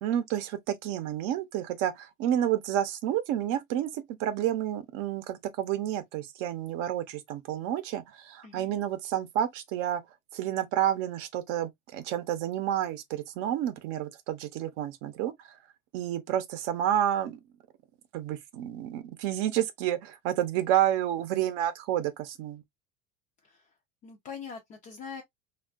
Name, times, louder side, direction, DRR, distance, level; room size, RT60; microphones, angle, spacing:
voice 1, 0.0-10.0 10.3-15.6 15.9-17.4 18.1-22.6, right 11 dB, 50° right, 0.6 m, -30 dB
voice 2, 8.4-8.8 23.4-23.7 24.0-25.2, left 6 dB, 25° left, 0.3 m, -43 dB
3.4 x 2.3 x 2.2 m
cardioid pair, 165°, 31 cm